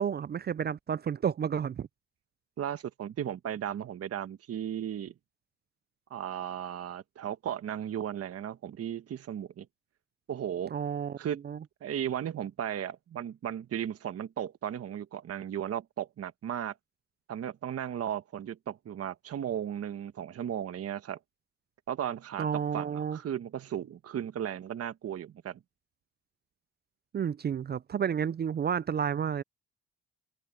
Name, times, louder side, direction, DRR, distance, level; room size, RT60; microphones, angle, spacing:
voice 1, 0.0-1.9 10.7-11.2 11.4-11.6 22.4-23.2 27.1-29.4, right 8 dB, 35° right, 0.5 m, -31 dB
voice 2, 2.6-5.1 6.1-9.7 10.3-10.7 11.2-11.4 11.8-16.7 17.3-21.2 21.9-25.6, right 10 dB, 50° right, 1.3 m, -35 dB
open air
supercardioid pair, 75°, 30 cm